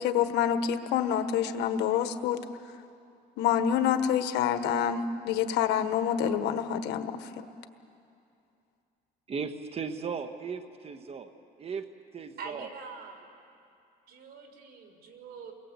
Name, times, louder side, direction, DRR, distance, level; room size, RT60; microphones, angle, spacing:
voice 1, 0.0-2.4 3.4-7.4, left 9 dB, 85° left, 9 dB, 1.4 m, -27 dB
voice 2, 9.3-11.3 11.6-11.9 12.1-12.7, right 5 dB, 35° right, 8 dB, 1.4 m, -36 dB
voice 3, 12.4-13.3 14.1-15.5, right 5 dB, 70° right, 4 dB, 4.0 m, -44 dB
29.5 x 21.5 x 8.3 m, 2.6 s
cardioid pair, 110°, 17 cm